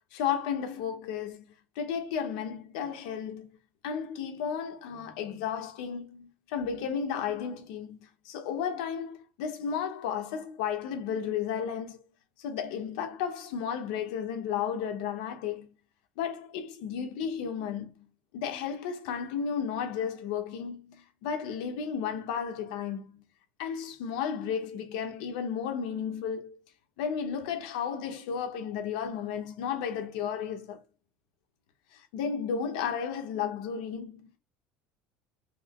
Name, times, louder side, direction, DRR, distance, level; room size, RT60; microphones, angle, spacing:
voice 1, 0.1-3.5 3.8-12.0 12.4-15.7 16.2-18.1 18.3-23.2 23.6-26.6 27.0-30.8 31.9-34.4, left 7 dB, 85° left, 1.2 m, -33 dB
4.9 x 2.2 x 3.7 m
cardioid pair, 175°, 4 cm